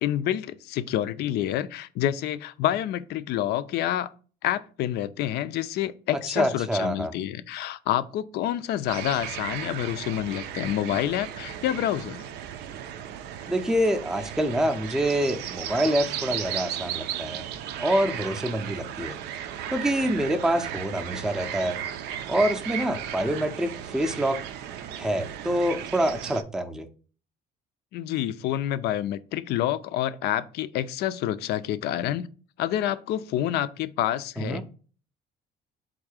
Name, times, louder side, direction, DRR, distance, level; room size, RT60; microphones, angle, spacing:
voice 1, 0.0-4.1 4.4-12.3 27.9-32.3 32.6-34.6, left 12 dB, 75° left, 0.4 m, -28 dB
voice 2, 6.4-7.1 13.5-17.5 17.8-19.2 19.7-21.8 22.3-24.4 25.0-26.9 34.4-34.6, right 1 dB, 5° right, 0.4 m, -26 dB
sound 1, 8.9-26.4, right 10 dB, 85° right, 0.4 m, -35 dB
3.6 x 2.7 x 4.7 m
cardioid pair, 110°, 17 cm